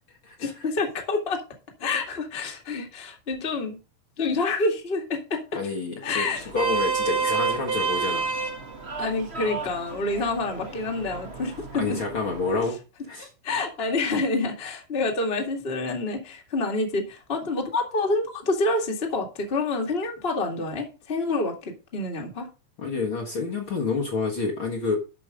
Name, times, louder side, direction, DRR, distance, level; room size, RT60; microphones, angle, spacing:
voice 1, 0.4-1.4 1.8-3.8 4.2-5.6 6.0-6.5 9.0-12.0 13.4-22.5, left 3 dB, 20° left, 1.9 m, -27 dB
voice 2, 5.5-8.3 11.7-12.8 13.1-13.3 22.8-25.0, left 4 dB, 45° left, 2.1 m, -28 dB
Vehicle horn car horn honking, 6.3-12.7, right 5 dB, 30° right, 1.2 m, -30 dB
12.5 x 5.4 x 5.0 m
omnidirectional pair, 3.5 m